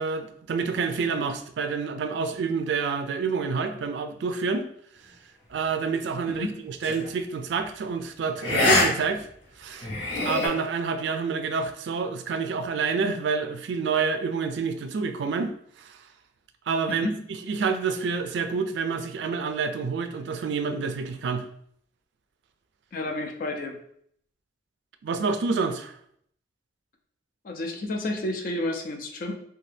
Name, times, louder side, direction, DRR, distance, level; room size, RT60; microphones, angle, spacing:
voice 1, 0.0-4.7 5.5-9.3 9.6-9.9 10.2-16.0 16.7-17.1 17.5-21.5 25.0-26.0, right 5 dB, 70° right, 8 dB, 0.3 m, -28 dB
sound 1, 6.8-7.1 8.4-8.9 9.2-9.3 9.8-10.5, left 2 dB, 70° left, 0.9 m, -23 dB
voice 2, 22.9-23.8 27.4-29.3, left 1 dB, 45° left, 3 dB, 0.4 m, -30 dB
2.7 x 2.2 x 3.2 m, 0.66 s
head